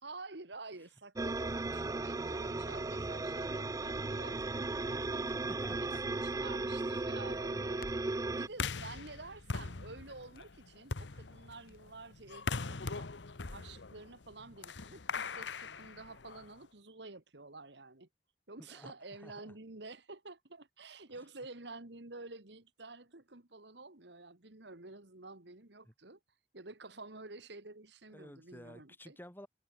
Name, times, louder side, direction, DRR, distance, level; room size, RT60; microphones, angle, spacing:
voice 1, 0.0-5.3 5.8-7.8 8.3-13.1 13.5-18.1 18.5-26.2 26.5-29.2, right 3 dB, 65° right, 2.1 m, -50 dB
sound 1, 1.2-8.5, right 2 dB, 20° right, 0.4 m, -36 dB
Crackle, 4.5-13.8, left 2 dB, 50° left, 2.2 m, -60 dB
voice 2, 5.3-6.0 18.6-18.9 19.2-19.4 25.8-25.9 28.1-29.5, left 1 dB, 10° left, 4.3 m, -52 dB
sound 2, 8.5-16.6, left 4 dB, 75° left, 1.1 m, -41 dB
head